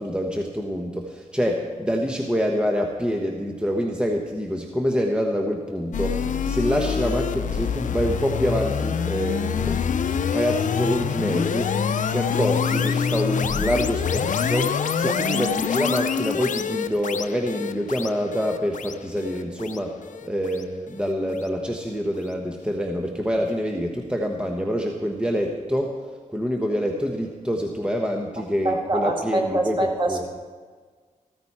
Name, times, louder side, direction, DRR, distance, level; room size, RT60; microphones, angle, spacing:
voice 1, 0.0-9.9 10.3-11.8 12.1-19.9 20.2-26.0 26.3-29.8 30.1-30.3, equal, 5° right, 1 dB, 1.1 m, -26 dB
sound 1, 5.9-21.1, left 7 dB, 70° left, 0.6 m, -26 dB
voice 2, 28.6-30.3, right 1 dB, 35° right, 1 dB, 2.4 m, -25 dB
14.5 x 14.0 x 4.3 m, 1.5 s
wide cardioid pair, 100°, 14 cm